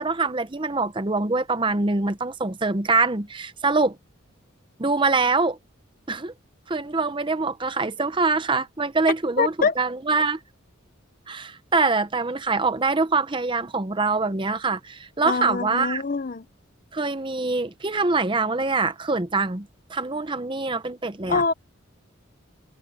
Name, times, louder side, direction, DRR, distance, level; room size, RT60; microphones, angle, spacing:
voice 1, 0.0-4.0 4.8-5.6 6.1-6.3 6.7-10.4 11.3-16.0 16.9-21.4, right 3 dB, 25° right, 0.7 m, -24 dB
voice 2, 9.4-9.7 15.2-16.4 21.3-21.5, left 4 dB, 40° left, 0.6 m, -24 dB
head